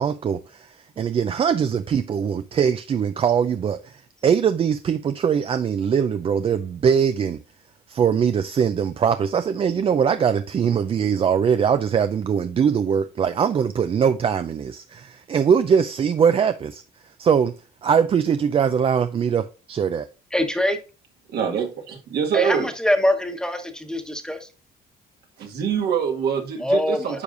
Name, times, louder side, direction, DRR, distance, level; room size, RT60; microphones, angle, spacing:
voice 1, 0.0-7.4 7.9-16.8 17.2-17.5 17.8-20.1, right 7 dB, 35° right, 0.4 m, -21 dB
voice 2, 20.3-20.8 22.3-24.5 26.6-27.2, left 1 dB, 5° left, 1.1 m, -23 dB
voice 3, 21.3-22.7 25.4-27.2, right 7 dB, 70° right, 1.8 m, -24 dB
9.7 x 5.2 x 2.6 m
cardioid pair, 110°, 17 cm